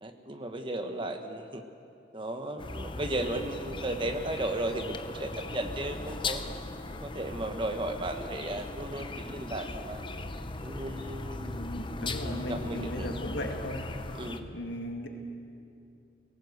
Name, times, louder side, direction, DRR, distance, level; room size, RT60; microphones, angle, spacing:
voice 1, 0.0-1.6 2.1-6.4 7.0-10.1 10.6-13.1 14.1-14.4, right 1 dB, 25° right, 6 dB, 1.2 m, -35 dB
sound 1, 2.6-14.4, left 2 dB, 25° left, 0.7 m, -38 dB
voice 2, 11.4-13.9 14.5-15.1, left 1 dB, 85° left, 2 dB, 2.3 m, -36 dB
19.0 x 17.5 x 8.0 m, 2.6 s
head